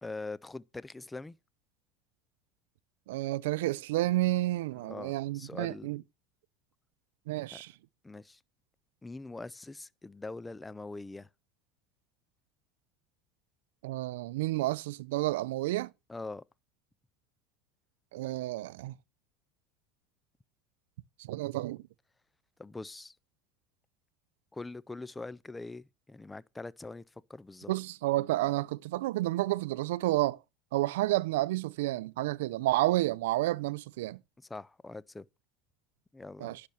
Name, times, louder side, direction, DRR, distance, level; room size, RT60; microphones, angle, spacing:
voice 1, 0.0-1.4 4.7-6.0 7.5-7.6 8.0-8.4 9.0-11.3 16.1-16.4 22.6-23.2 24.5-27.0 27.3-27.7 34.5-35.3 36.1-36.6, left 3 dB, 10° left, 0.5 m, -43 dB
voice 2, 3.1-6.0 7.3-7.7 13.8-15.9 18.1-19.0 21.2-21.8 27.7-30.4 30.7-34.2 36.4-36.6, right 17 dB, 85° right, 0.5 m, -30 dB
10.5 x 6.6 x 5.8 m
supercardioid pair, 130°, 0 cm